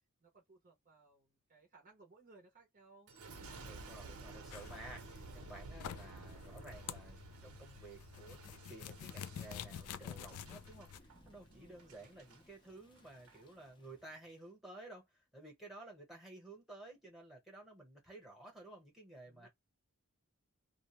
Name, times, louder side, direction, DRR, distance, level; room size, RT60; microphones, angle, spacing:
voice 1, 0.2-3.1 3.4-3.7 11.5-12.1 19.3-19.5, right 3 dB, 35° right, 0.7 m, -64 dB
Boom, 3.1-12.4 13.0-13.4, right 3 dB, 85° right, 0.8 m, -53 dB
voice 2, 3.6-8.4 8.7-19.5, right 2 dB, ahead, 1.0 m, -54 dB
sound 1, 4.5-11.0, left 9 dB, 90° left, 0.3 m, -49 dB
Thunder / Rain, 8.8-14.5, left 1 dB, 20° left, 0.5 m, -66 dB
2.4 x 2.1 x 2.9 m
head